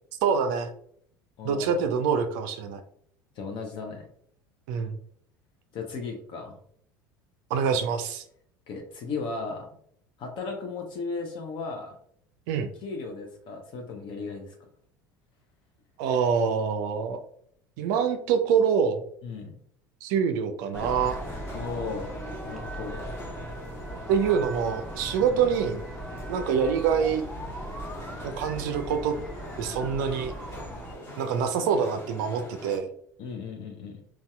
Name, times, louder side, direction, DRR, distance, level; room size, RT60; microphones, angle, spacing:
voice 1, 0.2-0.7 1.4-2.8 4.7-5.0 7.5-8.2 12.5-12.7 16.0-17.2 17.8-19.0 20.0-21.2 24.1-25.8 26.3-27.2 28.2-29.1 29.6-30.3 31.2-32.9, right 6 dB, 60° right, 7 dB, 0.4 m, -25 dB
voice 2, 1.4-1.8 3.4-4.1 5.7-6.6 8.7-9.7 10.2-11.9 12.8-14.6 19.2-19.5 21.5-22.1 22.5-23.1 25.2-25.4 33.2-34.0, left 4 dB, 45° left, 2 dB, 0.6 m, -36 dB
sound 1, 20.7-32.8, left 1 dB, 25° left, 1.3 m, -42 dB
sound 2, 20.7-30.9, right 1 dB, 5° left, 0.7 m, -39 dB
4.0 x 2.3 x 2.2 m, 0.65 s
figure-of-eight pair, 70°, 11 cm